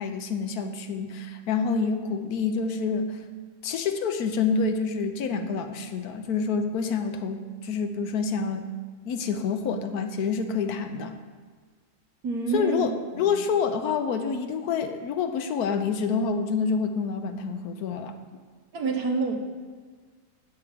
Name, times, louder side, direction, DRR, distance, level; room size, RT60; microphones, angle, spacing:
voice 1, 0.0-3.2 3.6-8.7 9.0-11.1 12.5-18.1, left 5 dB, 85° left, 7 dB, 1.3 m, -27 dB
voice 2, 12.2-12.9 13.1-13.4 18.7-19.4, right 4 dB, 80° right, 3 dB, 1.7 m, -27 dB
16.0 x 7.1 x 3.5 m, 1.5 s
omnidirectional pair, 1.6 m